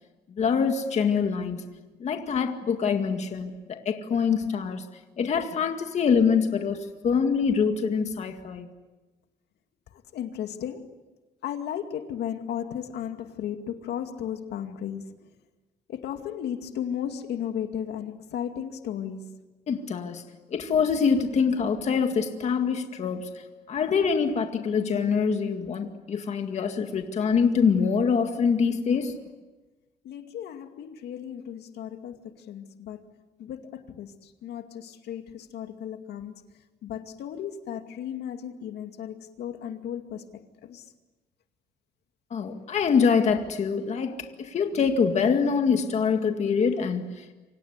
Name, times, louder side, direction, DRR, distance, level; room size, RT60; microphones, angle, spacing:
voice 1, 0.3-1.7 2.0-4.9 5.2-8.7 19.7-20.2 20.5-23.3 23.7-29.2 42.3-47.3, left 6 dB, 40° left, 2.0 m, -25 dB
voice 2, 9.9-10.9 11.4-15.1 15.9-19.4 30.0-33.1 33.4-36.4 36.8-40.8, left 9 dB, 80° left, 2.3 m, -35 dB
28.0 x 25.5 x 8.2 m
cardioid pair, 155°, 17 cm